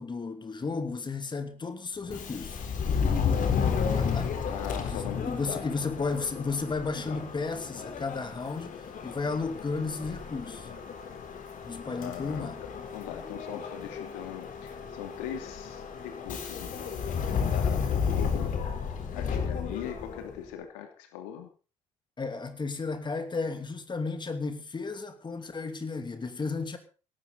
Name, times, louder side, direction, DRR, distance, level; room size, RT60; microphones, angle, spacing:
voice 1, 0.0-2.6 3.9-4.3 4.9-10.7 11.6-12.6 22.2-26.8, left 4 dB, 25° left, 2.8 m, -33 dB
Subway metro underground, 2.0-20.4, left 6 dB, 50° left, 4.1 m, -32 dB
voice 2, 4.5-5.7 11.8-18.5 19.1-21.5, left 10 dB, 65° left, 2.8 m, -41 dB
18.0 x 15.5 x 4.1 m
figure-of-eight pair, 55°, 18 cm